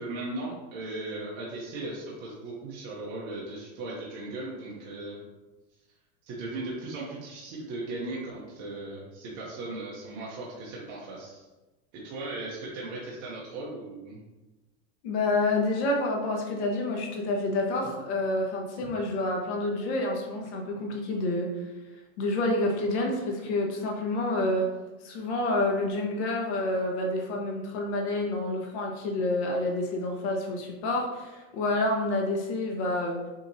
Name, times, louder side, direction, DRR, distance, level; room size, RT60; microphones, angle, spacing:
voice 1, 0.0-5.2 6.3-11.5 11.9-14.2, right 2 dB, 35° right, -5 dB, 0.8 m, -37 dB
voice 2, 15.0-21.5 22.2-24.7 25.0-33.2, left 2 dB, 55° left, 1 dB, 1.1 m, -28 dB
6.5 x 2.9 x 2.7 m, 1.1 s
supercardioid pair, 165°, 39 cm